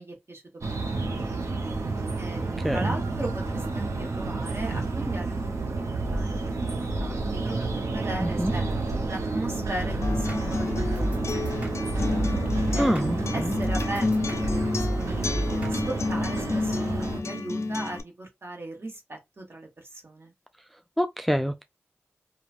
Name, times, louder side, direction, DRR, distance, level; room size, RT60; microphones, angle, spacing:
voice 1, 0.0-8.7 9.1-11.1 11.6-12.2 12.7-16.9 17.2-20.3, right 1 dB, 50° right, 1.4 m, -38 dB
sound 1, 0.6-17.2, right 3 dB, 70° right, 0.8 m, -30 dB
voice 2, 2.6-3.0 8.2-8.5 12.8-13.5 21.0-21.6, equal, ahead, 0.3 m, -26 dB
Acoustic guitar, 10.0-18.0, left 3 dB, 65° left, 0.4 m, -30 dB
sound 2, 10.0-15.8, right 1 dB, 25° right, 1.4 m, -33 dB
3.0 x 2.2 x 2.5 m
cardioid pair, 40°, 5 cm